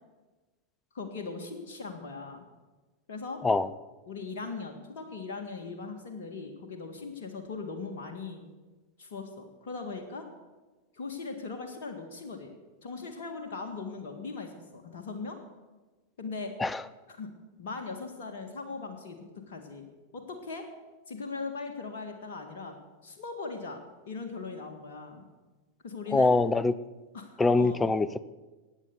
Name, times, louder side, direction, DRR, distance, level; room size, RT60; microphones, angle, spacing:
voice 1, 0.9-2.4 3.1-3.4 4.1-8.4 9.0-10.3 10.9-12.5 12.8-15.4 16.2-16.5 17.1-17.3 17.6-19.9 20.1-20.6 21.1-22.7 23.0-25.2 25.8-26.3 27.1-27.8, left 4 dB, 55° left, 4 dB, 1.7 m, -39 dB
voice 2, 26.1-26.7 27.4-28.2, left 3 dB, 10° left, 17 dB, 0.6 m, -23 dB
15.5 x 9.3 x 6.7 m, 1.2 s
figure-of-eight pair, 90°, 0 cm